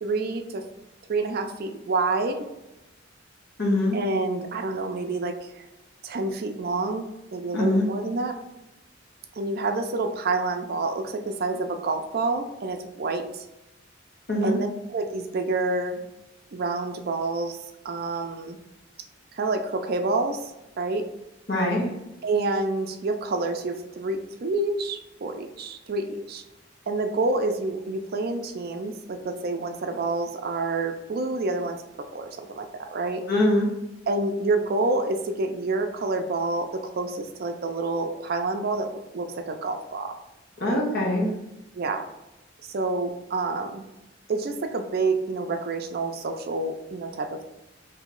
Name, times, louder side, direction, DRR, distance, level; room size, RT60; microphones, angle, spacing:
voice 1, 0.0-0.6 1.1-2.4 3.9-5.6 6.0-7.1 7.3-8.4 9.4-13.4 14.4-16.0 16.5-17.6 17.8-18.6 19.3-20.4 20.8-21.1 22.2-26.4 26.9-33.2 34.1-40.2 41.7-42.1 42.7-43.8 44.3-47.5, right 3 dB, 50° right, 5 dB, 0.5 m, -28 dB
voice 2, 3.6-4.0 7.5-7.9 14.3-14.6 21.5-21.9 33.3-33.7 40.6-41.3, left 1 dB, 55° left, -3 dB, 1.1 m, -23 dB
3.0 x 2.7 x 3.7 m, 0.93 s
head